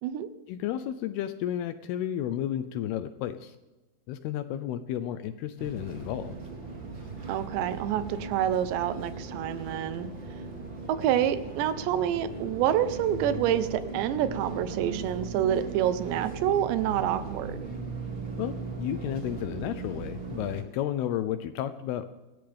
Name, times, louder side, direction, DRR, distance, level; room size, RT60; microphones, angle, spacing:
voice 1, 0.5-3.6 4.1-6.3 18.4-22.2, left 11 dB, 80° left, 11 dB, 2.3 m, -32 dB
sound 1, 5.6-20.6, right 4 dB, 35° right, 2.4 m, -38 dB
voice 2, 7.3-10.1 10.9-17.7, right 10 dB, 80° right, 12 dB, 3.0 m, -27 dB
26.5 x 14.0 x 3.5 m, 1.1 s
omnidirectional pair, 5.1 m